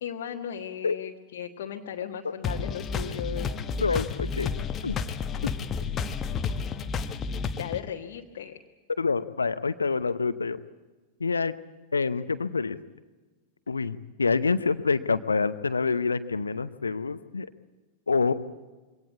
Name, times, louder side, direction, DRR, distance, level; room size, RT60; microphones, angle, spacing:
voice 1, 0.0-3.5 7.5-8.6, left 9 dB, 55° left, 1 dB, 1.4 m, -36 dB
sound 1, 2.4-7.8, left 5 dB, 25° left, 1.2 m, -31 dB
voice 2, 3.8-4.5 4.8-5.0 9.0-10.6 11.2-11.5 11.9-12.8 13.7-17.5 18.1-18.3, left 4 dB, 75° left, 14 dB, 0.8 m, -26 dB
23.5 x 18.0 x 8.4 m, 1.3 s
figure-of-eight pair, 90°, 0 cm